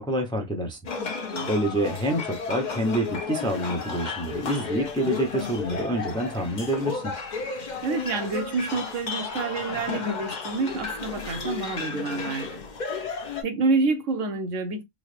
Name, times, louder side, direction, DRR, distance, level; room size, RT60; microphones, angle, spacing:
voice 1, 0.0-0.8 1.5-7.1, right 1 dB, 5° left, 0.5 m, -27 dB
sound 1, 0.8-13.4, left 5 dB, 45° left, 0.7 m, -33 dB
voice 2, 1.0-1.5 7.8-12.6 13.4-14.8, right 3 dB, 80° right, 1.1 m, -28 dB
3.9 x 2.0 x 3.2 m
omnidirectional pair, 1.3 m